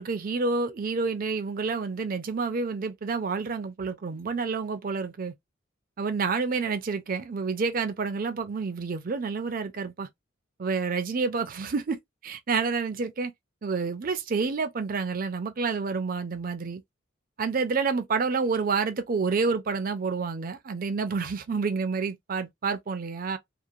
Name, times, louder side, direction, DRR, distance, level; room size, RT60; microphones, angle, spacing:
voice 1, 0.0-5.3 6.0-10.1 10.6-13.3 13.6-16.8 17.4-23.4, right 4 dB, 45° right, 0.4 m, -29 dB
2.8 x 2.0 x 2.4 m
head